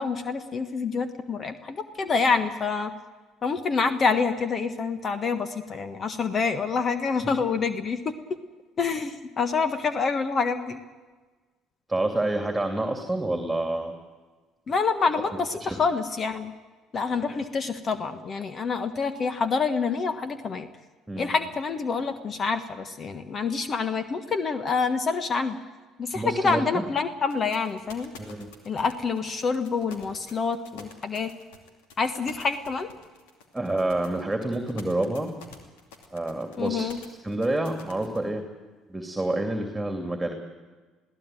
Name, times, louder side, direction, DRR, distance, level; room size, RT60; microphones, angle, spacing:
voice 1, 0.0-2.9 3.4-8.1 8.8-10.8 14.7-16.5 16.9-20.7 21.2-25.6 26.0-28.1 28.6-31.3 32.0-32.9 36.6-37.0, left 5 dB, 40° left, 10 dB, 1.4 m, -27 dB
voice 2, 11.9-13.9 15.6-15.8 21.1-21.3 26.1-26.8 28.2-28.5 33.5-35.3 36.1-36.9 37.2-38.4 38.9-40.3, right 1 dB, 10° right, 5 dB, 2.8 m, -28 dB
sound 1, 27.3-38.2, left 5 dB, 80° left, 2.6 m, -48 dB
21.5 x 16.0 x 9.2 m, 1.3 s
hypercardioid pair, 60°, 0 cm